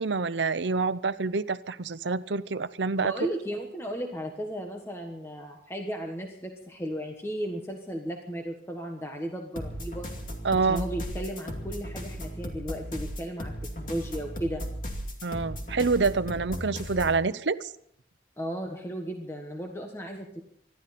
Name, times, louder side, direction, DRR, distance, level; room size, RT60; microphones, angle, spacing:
voice 1, 0.0-3.1 10.4-10.9 15.2-17.7, right 4 dB, 80° right, 14 dB, 0.8 m, -27 dB
voice 2, 3.0-10.1 10.6-13.5 13.8-14.6 18.4-20.4, right 1 dB, 15° left, 2 dB, 1.4 m, -35 dB
sound 1, 9.5-17.2, equal, 45° left, 2.7 m, -36 dB
26.0 x 12.0 x 4.3 m, 0.69 s
head